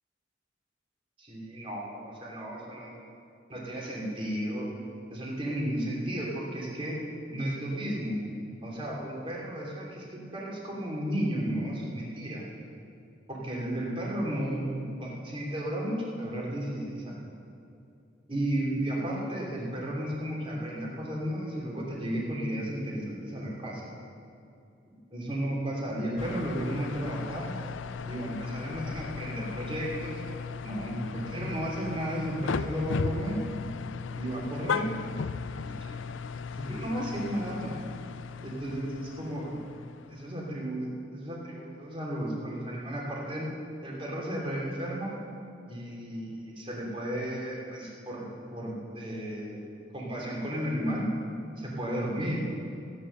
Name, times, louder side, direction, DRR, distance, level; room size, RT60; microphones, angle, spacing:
voice 1, 1.2-2.9 3.5-4.7 5.1-7.0 7.3-8.2 8.6-12.4 13.3-17.1 18.3-23.8 25.1-27.6 28.1-30.2 30.6-33.4 34.1-35.0 35.6-36.0 36.5-37.8 38.4-39.6 40.1-43.5 43.8-45.2 45.7-49.6 49.9-51.1 51.6-52.5, right 1 dB, 30° right, -3 dB, 3.0 m, -33 dB
sound 1, 26.2-40.5, left 5 dB, 80° left, 0.4 m, -36 dB
16.0 x 9.9 x 6.7 m, 2.6 s
head